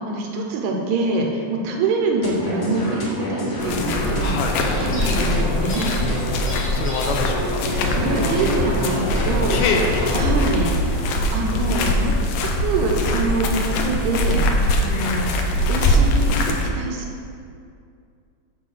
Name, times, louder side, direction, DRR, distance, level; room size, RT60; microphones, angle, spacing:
voice 1, 0.0-4.3 4.8-5.9 7.7-9.6 10.1-12.1 12.4-15.3 15.7-17.3, right 3 dB, 75° right, 1 dB, 2.1 m, -25 dB
sound 1, 2.2-10.5, equal, 50° left, 1.7 m, -28 dB
sound 2, 3.6-16.7, left 1 dB, 75° left, 1.7 m, -22 dB
voice 2, 4.2-4.6 6.7-7.6 9.5-10.0, left 4 dB, 90° left, 2 dB, 2.4 m, -25 dB
10.0 x 3.8 x 6.5 m, 2.4 s
omnidirectional pair, 3.6 m